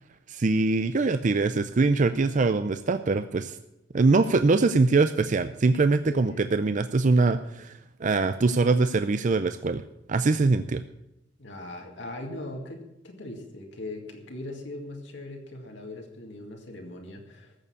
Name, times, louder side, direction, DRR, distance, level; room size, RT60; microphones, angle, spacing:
voice 1, 0.3-3.6 3.9-7.7 8.0-9.8 10.1-10.8, right 3 dB, 45° right, 10 dB, 0.5 m, -23 dB
voice 2, 6.1-6.4 11.4-17.5, left 1 dB, 75° left, 1 dB, 2.2 m, -40 dB
14.0 x 6.8 x 8.3 m, 0.86 s
head